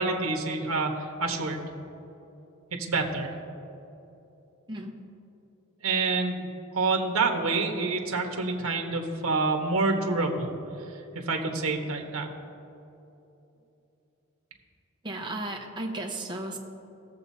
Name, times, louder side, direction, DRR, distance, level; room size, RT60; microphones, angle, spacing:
voice 1, 0.0-1.7 2.9-3.3 5.8-6.5 6.7-10.5 11.1-12.3, right 3 dB, 75° right, 3 dB, 1.3 m, -27 dB
voice 2, 15.0-16.6, right 1 dB, 20° right, 1 dB, 1.1 m, -34 dB
19.5 x 7.3 x 2.8 m, 2.9 s
head